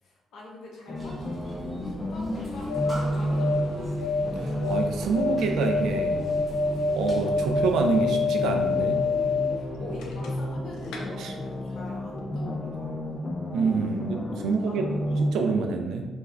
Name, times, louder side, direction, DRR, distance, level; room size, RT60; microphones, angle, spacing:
voice 1, 0.0-1.6 1.9-4.1 9.6-13.2 14.6-15.0, left 2 dB, 70° left, -3 dB, 0.8 m, -44 dB
sound 1, 0.9-15.3, equal, 25° left, 0.3 m, -32 dB
sound 2, 0.9-8.0, equal, 10° right, 0.8 m, -42 dB
sound 3, 2.4-10.6 10.8-11.0, left 4 dB, 90° left, 0.4 m, -28 dB
voice 2, 4.6-6.2 6.9-9.1 11.2-11.3 13.5-14.9 15.2-16.1, right 4 dB, 80° right, 4 dB, 0.3 m, -27 dB
2.4 x 2.3 x 3.2 m, 1.3 s
cardioid pair, 90°, 0 cm